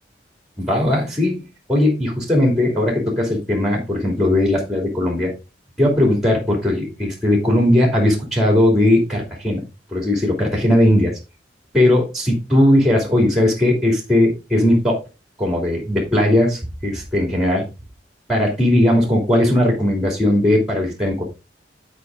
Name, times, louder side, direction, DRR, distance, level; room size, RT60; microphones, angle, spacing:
voice 1, 0.6-5.3 5.8-9.6 9.9-11.2 11.7-15.0 15.4-17.7 18.3-21.2, left 1 dB, ahead, 1 dB, 2.9 m, -18 dB
11.0 x 5.2 x 3.6 m, 0.28 s
head